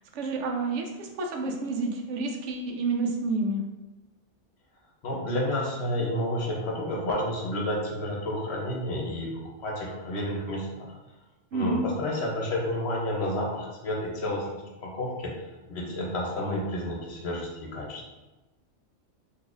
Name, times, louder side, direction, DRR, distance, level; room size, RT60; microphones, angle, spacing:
voice 1, 0.1-3.6 11.5-11.9, right 3 dB, 80° right, 3 dB, 0.9 m, -29 dB
voice 2, 5.0-10.9 11.5-15.3 15.7-18.0, left 1 dB, 65° left, -2 dB, 1.0 m, -30 dB
3.9 x 2.7 x 2.4 m, 1.1 s
omnidirectional pair, 1.2 m